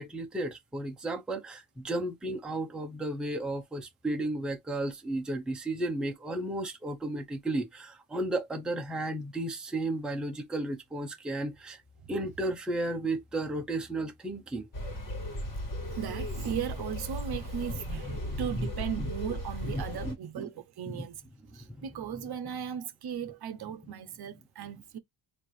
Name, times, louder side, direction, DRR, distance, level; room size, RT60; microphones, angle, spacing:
voice 1, 0.0-11.8 12.1-14.7 17.7-17.8 18.0-18.7 19.0-19.1 19.6-20.5 20.9-21.1 21.7-21.9, right 1 dB, ahead, 0.6 m, -34 dB
sound 1, 14.7-20.1, equal, 40° left, 1.8 m, -36 dB
voice 2, 15.9-21.2 21.5-25.0, right 8 dB, 50° right, 0.7 m, -37 dB
4.4 x 2.7 x 3.1 m
cardioid pair, 155°, 48 cm